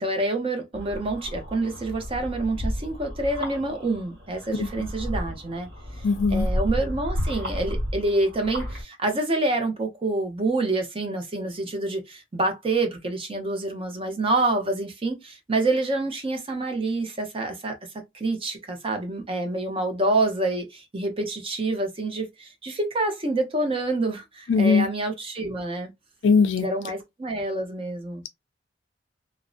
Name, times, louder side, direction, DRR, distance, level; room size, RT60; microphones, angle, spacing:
voice 1, 0.0-5.7 6.3-17.8 18.1-25.9 26.6-28.2, right 2 dB, 30° right, 0.6 m, -27 dB
sound 1, 0.7-8.8, equal, 55° right, 1.3 m, -32 dB
voice 2, 6.0-6.5 24.5-24.9 26.2-26.7, left 4 dB, 75° left, 0.4 m, -19 dB
2.6 x 2.0 x 2.3 m
head